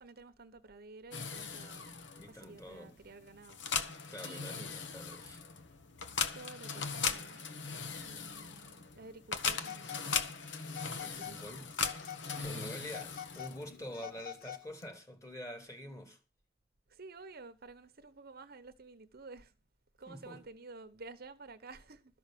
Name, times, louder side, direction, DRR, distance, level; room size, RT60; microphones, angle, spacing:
voice 1, 0.0-1.9 2.3-3.6 4.2-4.7 6.3-7.5 8.0-9.9 11.0-11.4 12.4-12.6 16.9-19.5 20.0-22.2, right 3 dB, 55° right, 1.0 m, -52 dB
sound 1, 1.1-13.8, left 6 dB, 70° left, 1.3 m, -39 dB
voice 2, 2.2-3.0 3.9-5.4 11.2-11.7 12.4-16.2 20.1-20.4, equal, 15° left, 2.5 m, -46 dB
Telephone, 9.6-10.3 10.7-11.4 11.7-12.5 12.8-14.9, left 10 dB, 50° left, 0.8 m, -46 dB
13.0 x 6.2 x 7.6 m
head